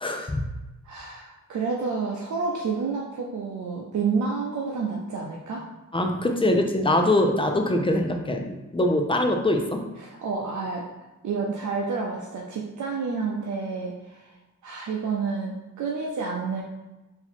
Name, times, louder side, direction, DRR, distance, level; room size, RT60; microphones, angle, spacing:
voice 1, 0.0-0.4 5.9-9.8, left 1 dB, 15° left, 4 dB, 0.6 m, -23 dB
voice 2, 0.8-5.6 10.0-10.8 11.2-14.3 14.6-16.6, right 4 dB, 70° right, -2 dB, 0.7 m, -29 dB
3.8 x 2.8 x 4.4 m, 1.1 s
cardioid pair, 95°, 31 cm